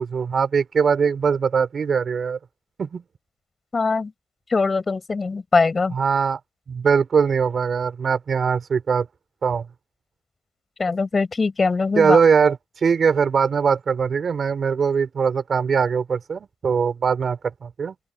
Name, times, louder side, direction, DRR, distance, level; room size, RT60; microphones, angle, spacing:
voice 1, 0.0-2.4 2.8-3.0 5.9-6.4 6.7-9.1 9.4-9.6 12.0-17.9, right 6 dB, 45° right, 4.7 m, -21 dB
voice 2, 3.7-4.1 4.5-5.9 10.8-12.2, left 4 dB, 30° left, 7.7 m, -21 dB
open air
cardioid pair, 90°, 0 cm